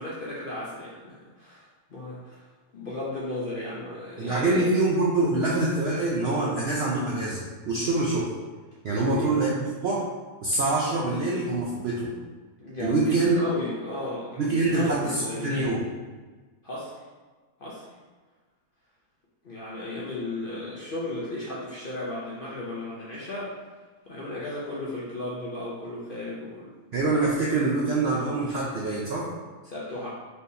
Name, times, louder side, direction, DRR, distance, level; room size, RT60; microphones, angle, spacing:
voice 1, 0.0-1.6 1.9-2.5 2.7-4.7 8.9-9.3 12.6-15.5 16.6-16.9 17.6-17.9 19.4-23.5 24.1-26.7 29.6-30.1, left 2 dB, 55° left, -6 dB, 0.6 m, -35 dB
voice 2, 4.2-8.3 8.8-10.0 10.4-12.1 12.8-13.4 14.4-15.9 26.9-29.3, right 2 dB, 65° right, -5 dB, 0.6 m, -25 dB
4.3 x 3.4 x 2.7 m, 1.3 s
omnidirectional pair, 1.6 m